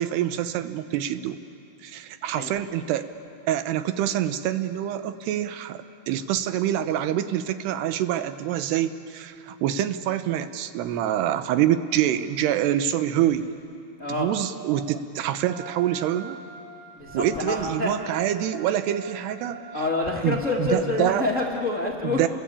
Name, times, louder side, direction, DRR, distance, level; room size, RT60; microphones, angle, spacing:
voice 1, 0.0-1.4 1.8-3.1 3.5-13.5 14.1-16.4 17.1-19.6 20.2-21.3 22.0-22.3, right 11 dB, 85° right, 11 dB, 3.0 m, -26 dB
voice 2, 14.0-14.3 17.0-17.9 19.7-22.2, left 3 dB, 80° left, -2 dB, 0.7 m, -27 dB
Wind instrument woodwind instrument, 15.4-20.0, right 4 dB, 55° right, 3.9 m, -43 dB
29.5 x 20.5 x 8.7 m, 2.5 s
omnidirectional pair, 4.7 m